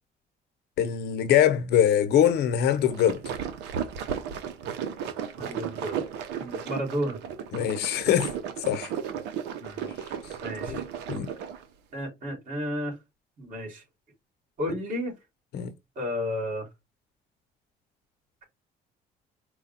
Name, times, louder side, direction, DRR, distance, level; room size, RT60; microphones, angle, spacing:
voice 1, 0.8-3.2 7.5-8.3 8.7-8.9 10.6-10.8 11.1-11.3 15.5-15.7, left 10 dB, 75° left, 0.9 m, -23 dB
sound 1, 2.7-11.6, right 8 dB, 90° right, 0.8 m, -34 dB
voice 2, 5.4-6.0 6.4-7.2 9.6-9.9 10.4-10.8 11.9-13.0 13.4-13.8 14.6-15.2 15.9-16.7, equal, 50° right, 3.0 m, -32 dB
4.7 x 2.3 x 4.1 m
cardioid pair, 110°, 17 cm